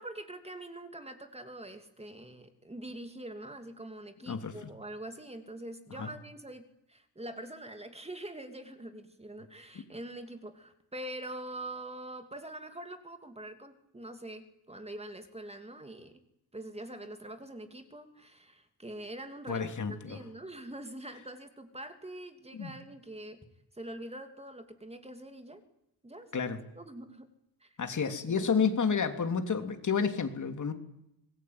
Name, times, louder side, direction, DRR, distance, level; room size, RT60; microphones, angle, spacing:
voice 1, 0.0-16.2 16.5-23.4 23.7-25.6 26.0-27.3 27.6-27.7 28.0-28.5, right 1 dB, 15° right, 7 dB, 2.8 m, -44 dB
voice 2, 4.3-4.7 6.0-6.1 19.5-20.2 22.5-22.7 26.3-26.6 27.8-30.7, left 6 dB, 45° left, 7 dB, 3.1 m, -30 dB
26.0 x 20.5 x 9.6 m, 0.82 s
wide cardioid pair, 135°, 42 cm